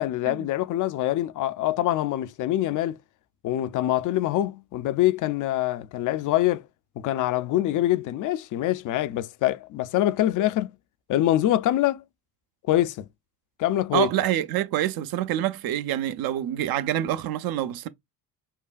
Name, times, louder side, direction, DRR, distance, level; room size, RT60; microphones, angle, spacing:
voice 1, 0.0-3.0 3.4-6.6 7.0-10.7 11.1-12.0 12.7-13.1 13.6-14.1, left 13 dB, 40° left, 0.5 m, -24 dB
voice 2, 13.9-17.9, right 12 dB, 50° right, 0.6 m, -26 dB
5.6 x 2.1 x 2.4 m
figure-of-eight pair, 50°, 49 cm